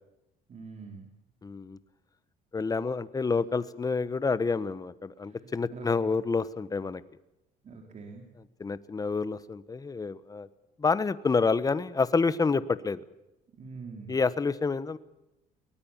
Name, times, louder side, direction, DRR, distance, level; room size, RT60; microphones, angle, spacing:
voice 1, 0.5-1.1 5.2-6.1 7.6-8.2 13.6-14.2, right 4 dB, 45° right, 1 dB, 4.0 m, -44 dB
voice 2, 1.4-1.8 2.5-7.0 8.6-10.5 10.8-13.0 14.1-15.0, left 4 dB, 20° left, 15 dB, 1.1 m, -28 dB
23.0 x 19.0 x 7.3 m, 0.92 s
cardioid pair, 110°, 17 cm